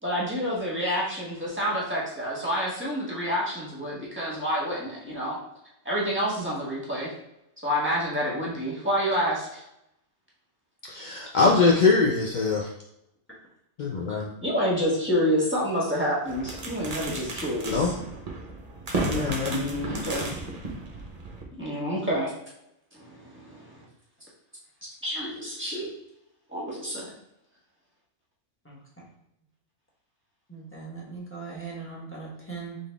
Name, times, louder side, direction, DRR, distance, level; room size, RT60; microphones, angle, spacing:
voice 1, 0.0-5.4 5.8-7.1 7.6-9.6 14.4-17.9 19.5-20.3 21.6-22.3 22.9-23.8 24.8-25.9 26.5-27.0, equal, 10° right, -6 dB, 1.4 m, -28 dB
voice 2, 10.8-12.7 13.8-14.3 17.7-17.9 19.0-19.8, left 4 dB, 70° left, -1 dB, 0.4 m, -23 dB
sound 1, 16.3-21.4, right 2 dB, 35° right, 0.7 m, -34 dB
voice 3, 30.5-32.8, right 4 dB, 10° left, -5 dB, 1.2 m, -39 dB
3.9 x 3.6 x 3.5 m, 0.82 s
omnidirectional pair, 1.4 m